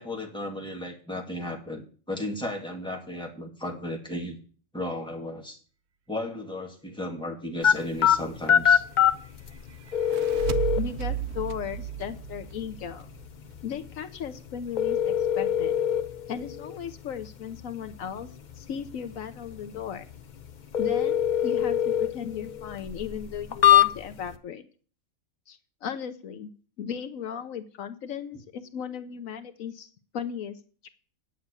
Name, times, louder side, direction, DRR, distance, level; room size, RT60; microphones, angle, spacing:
voice 1, 0.0-4.4 4.7-5.6 6.1-8.8, left 1 dB, 5° left, 0 dB, 2.0 m, -34 dB
sound 1, 7.6-24.3, left 9 dB, 45° left, 0.7 m, -26 dB
sound 2, 9.9-13.2, right 12 dB, 60° right, 0.9 m, -33 dB
voice 2, 10.7-13.1 13.6-15.8 16.3-18.3 18.5-20.1 20.8-24.7 25.5-26.5 26.8-30.9, left 8 dB, 80° left, 9 dB, 1.2 m, -36 dB
9.1 x 6.7 x 8.3 m, 0.42 s
omnidirectional pair, 1.4 m